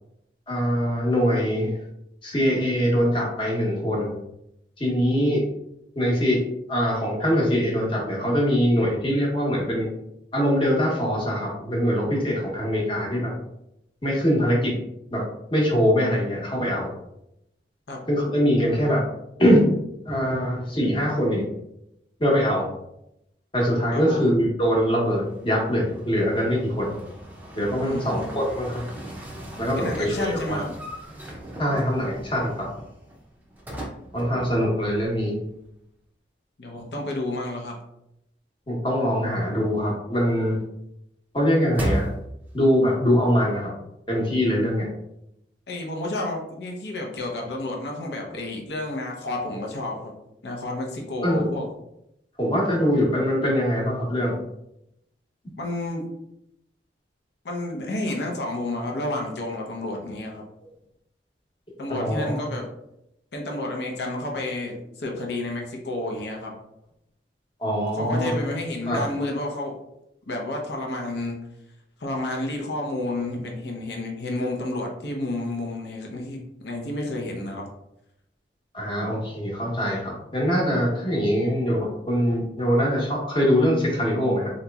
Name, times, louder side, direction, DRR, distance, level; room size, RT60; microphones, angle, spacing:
voice 1, 0.5-1.7 2.2-4.1 4.8-5.4 6.0-6.4 6.7-9.9 10.3-13.3 14.0-14.7 15.1-15.2 15.5-16.9 18.1-19.0 19.4-19.6 20.1-21.4 22.2-22.7 23.5-26.9 27.5-28.8 29.6-30.6 31.6-32.7 34.1-35.3 38.7-40.6 41.3-42.1 42.5-43.7 44.1-44.9 51.2-51.5 52.4-54.4 61.9-62.5 67.6-68.3 68.9-69.0 78.7-84.5, equal, 25° left, -2 dB, 0.9 m, -23 dB
voice 2, 23.9-24.3 27.8-28.4 29.8-30.7 36.6-37.8 45.7-50.1 50.4-51.7 55.6-56.1 57.4-60.4 61.8-62.7 63.3-66.5 67.9-69.7 70.3-71.4 72.0-77.6, left 2 dB, 65° left, 0 dB, 0.6 m, -30 dB
sound 1, 25.0-35.3 35.6-35.7 41.7-42.6, right 1 dB, 10° right, 0.5 m, -37 dB
3.8 x 2.9 x 2.3 m, 0.82 s
head